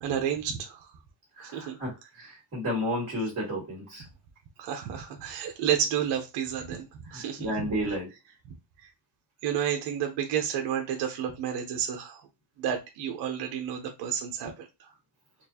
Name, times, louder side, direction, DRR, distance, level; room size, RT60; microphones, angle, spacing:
voice 1, 0.0-0.9 1.5-1.8 4.6-6.9 7.1-7.7 9.4-12.2 12.6-14.9, right 9 dB, 55° right, 4 dB, 0.9 m, -31 dB
voice 2, 1.4-4.0 7.1-8.1, equal, 30° right, -5 dB, 2.2 m, -32 dB
4.3 x 2.6 x 2.8 m, 0.24 s
cardioid pair, 150°, 50 cm